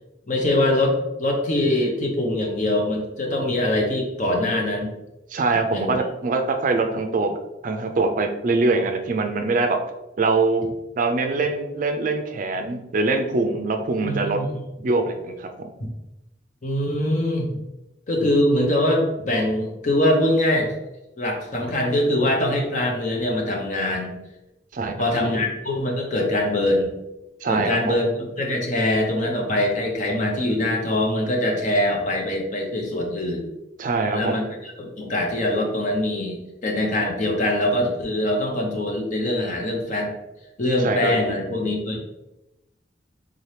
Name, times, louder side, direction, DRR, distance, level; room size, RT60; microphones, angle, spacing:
voice 1, 0.3-4.9 5.7-6.0 14.0-14.5 16.6-17.5 18.1-20.7 21.2-24.1 25.0-26.9 27.5-33.4 34.1-40.1 40.6-42.0, left 1 dB, 45° left, 1 dB, 0.8 m, -23 dB
voice 2, 5.3-7.4 7.6-9.8 10.2-10.6 11.0-14.4 14.8-15.7 24.7-25.4 27.4-27.9 33.8-34.4 40.8-41.4, right 3 dB, 50° right, 6 dB, 0.4 m, -23 dB
3.7 x 2.8 x 3.2 m, 0.94 s
head